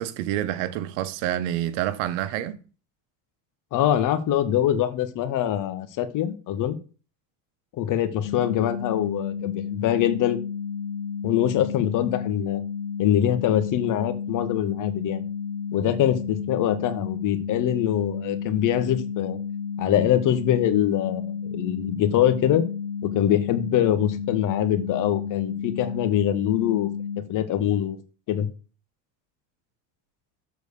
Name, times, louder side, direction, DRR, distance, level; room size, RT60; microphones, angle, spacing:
voice 1, 0.0-2.6, right 12 dB, 80° right, 1.0 m, -28 dB
voice 2, 3.7-6.8 7.7-10.4 11.2-12.6 13.0-15.2 15.7-19.4 19.8-22.6 23.0-26.9 27.2-28.0 28.3-28.5, left 11 dB, 55° left, 1.4 m, -24 dB
sound 1, 8.2-27.2, left 6 dB, 80° left, 1.1 m, -32 dB
7.2 x 4.5 x 6.7 m
supercardioid pair, 105°, 38 cm